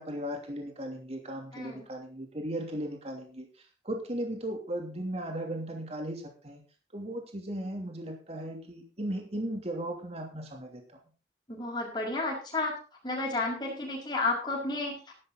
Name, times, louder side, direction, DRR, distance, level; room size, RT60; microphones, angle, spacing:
voice 1, 0.0-3.5 3.8-6.6 6.9-10.8, right 1 dB, 35° right, 2 dB, 3.0 m, -36 dB
voice 2, 1.5-1.9 11.5-12.7 13.0-15.1, left 2 dB, 25° left, -6 dB, 5.1 m, -32 dB
14.0 x 11.5 x 4.0 m, 0.35 s
head